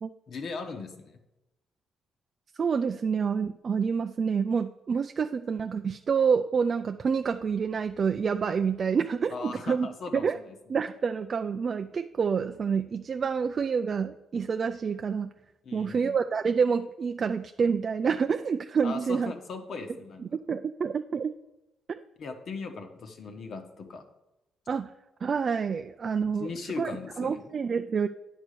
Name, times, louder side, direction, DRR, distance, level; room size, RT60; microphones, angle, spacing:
voice 1, 0.3-1.2 9.3-10.6 15.6-16.2 18.8-20.2 22.2-24.0 26.4-27.4, left 4 dB, 60° left, 5 dB, 1.2 m, -38 dB
voice 2, 2.6-9.9 10.1-10.4 10.7-15.3 15.7-19.3 20.2-21.3 21.9-22.0 24.7-24.9 25.2-26.5 26.8-26.9 27.2-28.1, right 6 dB, 45° right, 8 dB, 0.3 m, -28 dB
9.5 x 4.6 x 6.7 m, 0.95 s
cardioid pair, 90°, 0 cm